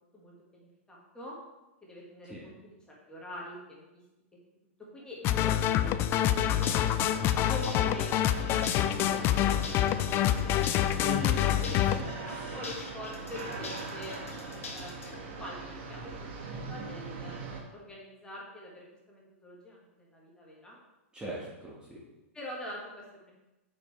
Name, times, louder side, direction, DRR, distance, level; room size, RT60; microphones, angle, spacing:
voice 1, 0.1-1.4 1.8-4.0 4.9-6.1 6.4-6.7 7.4-11.7 12.2-14.2 14.7-17.4 17.7-20.8 22.3-23.3, left 1 dB, 10° left, -4 dB, 1.7 m, -45 dB
sound 1, 5.2-12.0, left 11 dB, 35° left, 0.3 m, -26 dB
sound 2, 6.1-17.6, right 3 dB, 60° right, 1.2 m, -42 dB
sound 3, 6.4-15.2, left 3 dB, 85° left, 1.2 m, -45 dB
voice 2, 11.0-11.4 11.8-12.6 21.1-22.0, equal, 10° right, -6 dB, 1.5 m, -39 dB
6.8 x 5.3 x 3.3 m, 1.0 s
hypercardioid pair, 115°, 7 cm